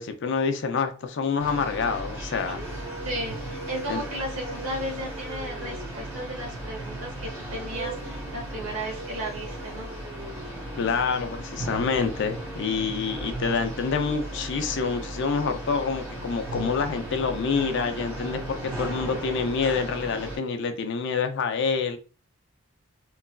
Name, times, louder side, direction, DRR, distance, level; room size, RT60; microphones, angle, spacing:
voice 1, 0.0-2.6 3.9-4.0 10.8-22.0, left 5 dB, 60° left, 7 dB, 0.4 m, -27 dB
sound 1, 1.4-20.4, right 1 dB, 10° right, 0.9 m, -36 dB
sound 2, 2.4-6.1 7.5-11.1, right 2 dB, 30° right, 0.4 m, -42 dB
voice 2, 3.0-9.9, right 1 dB, 75° right, -1 dB, 1.2 m, -35 dB
3.0 x 2.4 x 2.2 m, 0.35 s
head